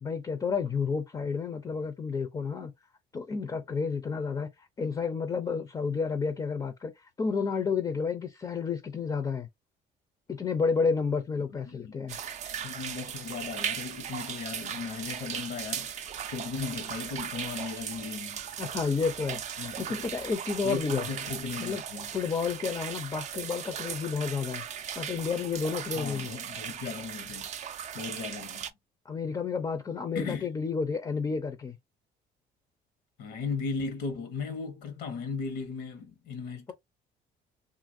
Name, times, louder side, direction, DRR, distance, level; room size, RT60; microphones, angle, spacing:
voice 1, 0.0-2.7 3.1-9.5 10.3-12.2 18.6-21.1 21.6-21.8 22.1-24.6 25.0-26.3 29.1-31.8, left 5 dB, 25° left, 0.5 m, -31 dB
voice 2, 11.7-12.0 12.5-16.0 16.2-18.4 19.6-20.1 20.6-22.1 25.9-27.5 27.9-28.7 30.1-30.5 33.2-36.7, left 5 dB, 80° left, 1.0 m, -37 dB
sound 1, 12.1-28.7, right 8 dB, 45° right, 0.4 m, -38 dB
2.8 x 2.5 x 2.6 m
cardioid pair, 110°, 17 cm